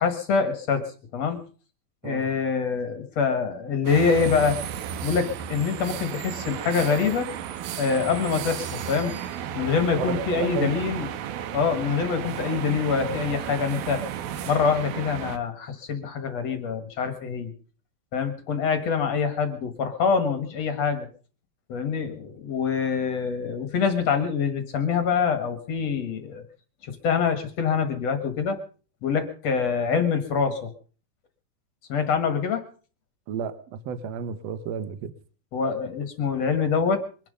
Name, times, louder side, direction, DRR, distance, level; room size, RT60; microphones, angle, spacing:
voice 1, 0.0-1.4 2.0-4.6 5.0-7.3 7.8-9.1 9.5-11.1 11.5-14.1 14.5-17.5 18.1-21.1 21.7-26.4 26.8-28.6 29.0-30.7 31.9-32.6 35.5-37.0, left 6 dB, 50° left, 2.5 m, -25 dB
sound 1, 3.9-15.4, right 9 dB, 90° right, 2.9 m, -33 dB
voice 2, 9.9-10.7 33.3-35.1, right 7 dB, 55° right, 2.0 m, -32 dB
23.5 x 10.5 x 5.3 m
omnidirectional pair, 4.2 m